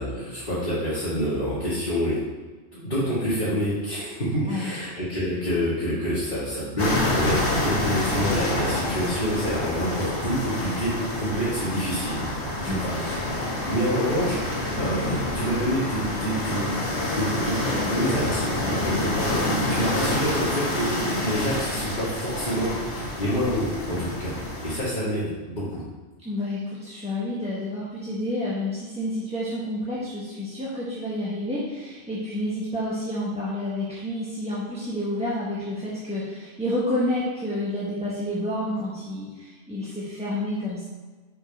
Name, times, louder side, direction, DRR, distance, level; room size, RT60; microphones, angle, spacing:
voice 1, 0.0-2.2 2.7-12.2 12.6-13.2 13.5-18.5 18.8-24.4 24.6-25.8, equal, 45° left, -10 dB, 1.9 m, -27 dB
sound 1, 6.8-24.8, left 1 dB, 85° left, 1.7 m, -27 dB
voice 2, 12.7-13.1 26.2-40.9, left 1 dB, 5° right, -8 dB, 1.1 m, -29 dB
5.4 x 4.5 x 5.4 m, 1.3 s
omnidirectional pair, 1.1 m